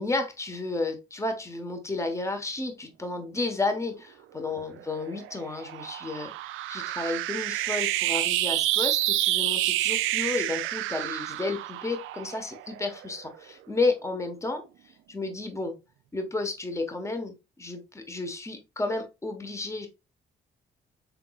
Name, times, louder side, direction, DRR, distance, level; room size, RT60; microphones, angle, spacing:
voice 1, 0.0-6.3 6.7-15.7 16.1-19.9, left 3 dB, 15° left, 6 dB, 1.1 m, -32 dB
sound 1, 4.7-13.4, right 15 dB, 85° right, 0.4 m, -29 dB
5.9 x 3.7 x 2.3 m, 0.26 s
cardioid pair, 90°, 20 cm